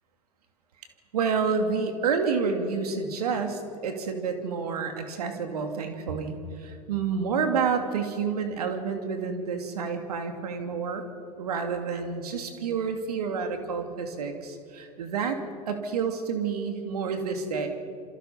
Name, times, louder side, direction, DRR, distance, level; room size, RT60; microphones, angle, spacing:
voice 1, 1.1-11.0 11.3-15.4 15.7-17.7, right 5 dB, 75° right, 6 dB, 2.7 m, -29 dB
27.5 x 25.5 x 5.7 m, 2.4 s
figure-of-eight pair, 80°, 20 cm